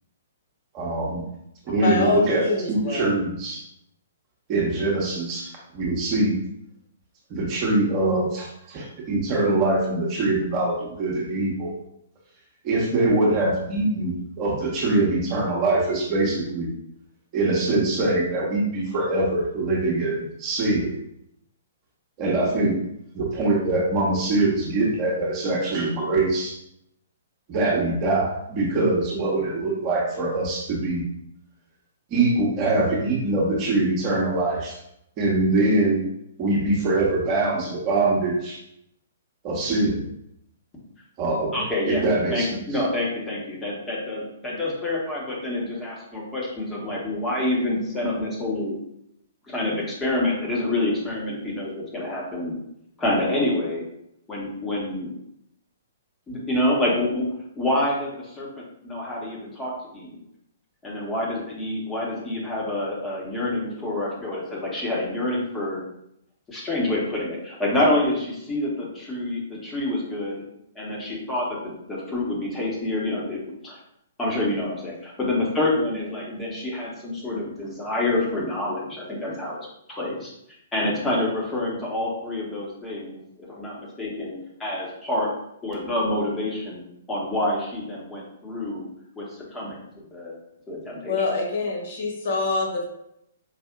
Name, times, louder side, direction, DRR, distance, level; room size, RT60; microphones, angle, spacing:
voice 1, 0.7-1.2 1.6-2.4 2.7-3.6 4.5-6.4 7.3-11.7 12.6-16.7 17.3-20.9 22.2-22.7 23.1-26.6 27.5-31.0 32.1-34.8 35.2-36.0 36.4-38.6 39.4-40.0 41.2-41.6 41.9-42.8, right 2 dB, 30° right, -3 dB, 1.0 m, -23 dB
voice 2, 1.8-3.0 91.1-92.9, left 3 dB, 50° left, -2 dB, 0.9 m, -25 dB
voice 3, 41.5-42.0 42.3-48.8 49.5-52.6 53.0-53.8 54.3-55.1 56.3-57.2 57.5-60.1 60.8-65.8 66.5-70.3 70.7-73.8 74.2-79.6 79.9-80.3 80.7-85.3 85.6-88.9 89.2-89.3 89.5-89.8 90.1-90.3 90.7-91.2, left 1 dB, 15° left, -4 dB, 1.1 m, -27 dB
4.9 x 2.6 x 2.3 m, 0.77 s
figure-of-eight pair, 120°, 0 cm